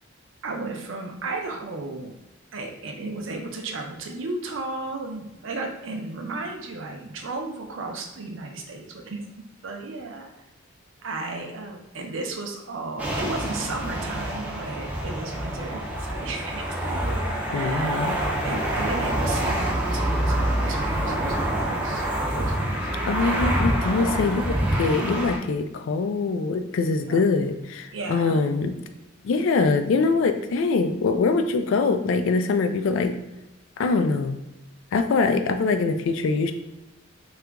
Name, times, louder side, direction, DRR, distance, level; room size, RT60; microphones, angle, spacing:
voice 1, 0.4-2.1 2.5-9.2 9.6-10.3 11.0-18.0 18.4-22.0 22.3-23.3 27.0-27.3 27.9-28.4, right 3 dB, 65° right, 2 dB, 0.5 m, -34 dB
sound 1, 13.0-25.4, right 1 dB, 5° right, 0.5 m, -26 dB
voice 2, 17.5-18.2 23.1-28.7 29.2-33.2 33.8-34.4 34.9-36.5, left 4 dB, 70° left, 8 dB, 0.3 m, -23 dB
2.8 x 2.4 x 3.4 m, 0.95 s
head